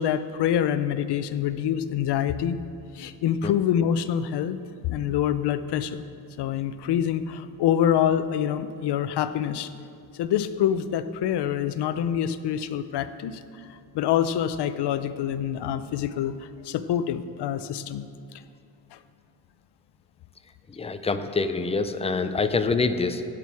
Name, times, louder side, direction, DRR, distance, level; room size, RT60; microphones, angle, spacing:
voice 1, 0.0-2.6 2.9-4.6 4.9-6.0 6.4-9.7 10.1-13.7 13.9-18.1 18.9-19.0, left 9 dB, 80° left, 13 dB, 0.6 m, -26 dB
voice 2, 20.8-23.3, left 4 dB, 15° left, 9 dB, 0.4 m, -25 dB
16.5 x 6.0 x 4.7 m, 2.4 s
cardioid pair, 145°, 40 cm